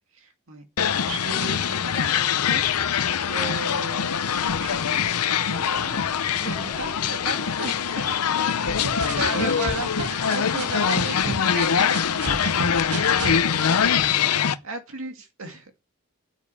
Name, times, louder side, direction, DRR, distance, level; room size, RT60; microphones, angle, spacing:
voice 1, 0.1-3.0 3.3-8.1 9.0-12.0 12.9-13.6 14.6-15.7, right 3 dB, 65° right, 2.2 m, -36 dB
sound 1, 0.8-14.5, left 7 dB, 85° left, 0.7 m, -23 dB
voice 2, 6.5-9.6, left 2 dB, 10° left, 3.9 m, -47 dB
sound 2, 8.7-10.6 11.0-13.4, right 3 dB, 85° right, 1.8 m, -31 dB
9.6 x 9.3 x 8.5 m
head